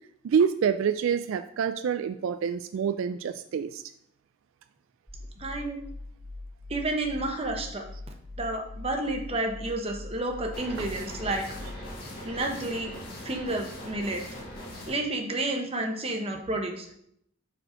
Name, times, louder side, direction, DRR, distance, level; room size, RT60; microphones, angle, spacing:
voice 1, 0.2-3.8 10.8-10.9, right 7 dB, 70° right, 10 dB, 0.3 m, -27 dB
sound 1, 5.1-11.9, left 2 dB, 5° right, 1.1 m, -42 dB
voice 2, 5.4-5.8 6.7-7.8 8.4-11.4 12.2-12.9 13.2-14.2 14.9-16.9, right 2 dB, 25° right, 3 dB, 0.9 m, -30 dB
sound 2, 10.5-14.9, left 1 dB, 45° left, 2.4 m, -40 dB
6.5 x 4.4 x 5.0 m, 0.72 s
head